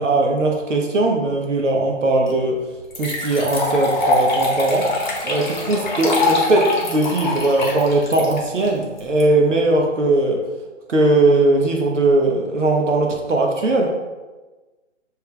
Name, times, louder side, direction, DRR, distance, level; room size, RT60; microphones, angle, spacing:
voice 1, 0.0-2.6 3.0-4.9 5.2-10.4 10.9-13.9, right 2 dB, 70° right, 1 dB, 1.0 m, -19 dB
sound 1, 2.3-2.4 2.9-9.2, left 2 dB, 35° left, 0.9 m, -23 dB
6.7 x 3.3 x 2.3 m, 1.2 s
hypercardioid pair, 165°, 39 cm